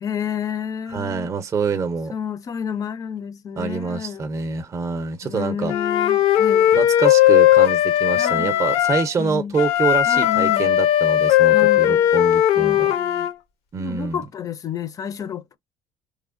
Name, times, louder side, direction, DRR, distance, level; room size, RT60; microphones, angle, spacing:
voice 1, 0.0-1.3 2.1-4.2 5.2-6.7 8.1-8.6 9.2-9.6 10.0-10.7 11.5-12.1 12.6-13.3 13.8-15.6, left 8 dB, 35° left, 0.4 m, -30 dB
voice 2, 0.9-2.1 3.6-5.7 6.7-12.9 13.7-14.2, right 5 dB, 30° right, 0.5 m, -26 dB
Wind instrument woodwind instrument, 5.7-9.0 9.5-13.3, left 12 dB, 80° left, 0.6 m, -17 dB
3.0 x 2.0 x 2.4 m
cardioid pair, 140°, 11 cm